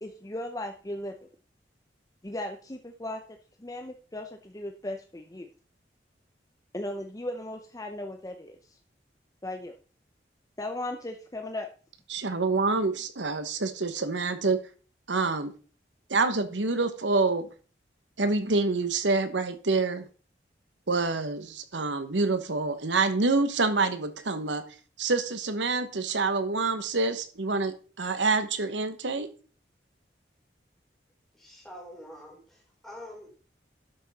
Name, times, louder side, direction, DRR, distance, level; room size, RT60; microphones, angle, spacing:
voice 1, 0.0-1.1 2.2-3.2 3.6-5.5 6.7-8.8 9.4-9.8 10.6-11.7, left 1 dB, 20° left, 5 dB, 0.7 m, -37 dB
voice 2, 12.1-14.6 15.1-15.5 16.1-17.5 18.2-20.1 20.9-24.7 25.0-29.3, right 3 dB, 90° right, 10 dB, 1.1 m, -27 dB
voice 3, 31.3-33.4, left 1 dB, ahead, -1 dB, 3.5 m, -46 dB
12.0 x 6.2 x 4.2 m, 0.38 s
head